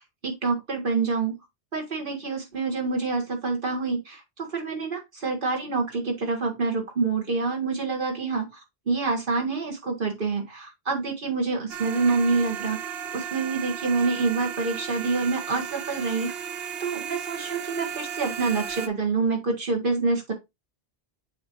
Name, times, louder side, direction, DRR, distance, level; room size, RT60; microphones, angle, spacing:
voice 1, 0.2-1.4 1.7-8.5 8.9-12.8 13.1-16.3 16.8-20.3, right 4 dB, 55° right, 1.8 m, -27 dB
sound 1, 11.7-18.9, right 8 dB, 75° right, 0.9 m, -35 dB
7.2 x 4.7 x 3.0 m
omnidirectional pair, 1.1 m